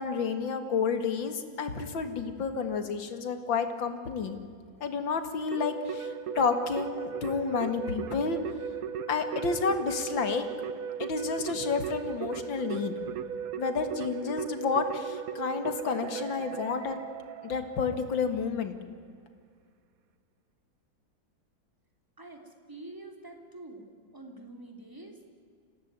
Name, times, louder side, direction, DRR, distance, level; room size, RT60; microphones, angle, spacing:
voice 1, 0.0-4.4 4.8-8.4 9.1-10.4 11.0-12.9 13.6-17.0 17.4-18.8, left 5 dB, 85° left, 9 dB, 2.6 m, -30 dB
Keyboard (musical), 5.5-18.0, right 7 dB, 55° right, 1.2 m, -37 dB
voice 2, 22.2-25.2, right 2 dB, 10° right, 4 dB, 3.1 m, -46 dB
26.0 x 17.0 x 9.6 m, 2.2 s
omnidirectional pair, 2.0 m